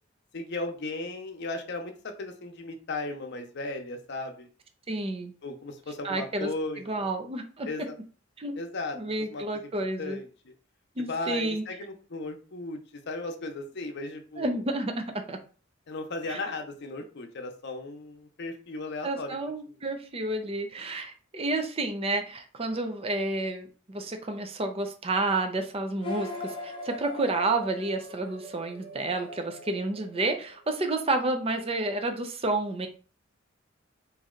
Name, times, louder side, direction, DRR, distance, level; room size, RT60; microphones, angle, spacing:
voice 1, 0.3-4.5 5.4-7.1 7.6-7.9 8.6-9.0 9.3-9.4 10.0-10.3 11.1-14.6 15.9-19.4, left 2 dB, 60° left, 5 dB, 0.7 m, -36 dB
voice 2, 4.9-5.3 6.0-6.5 6.9-7.7 8.4-8.6 8.9-10.2 11.0-11.6 14.4-15.4 16.3-16.4 19.0-32.9, right 2 dB, 30° right, 5 dB, 0.5 m, -30 dB
sound 1, 26.0-30.8, left 2 dB, 25° left, 0.8 m, -41 dB
3.1 x 2.7 x 3.7 m, 0.38 s
head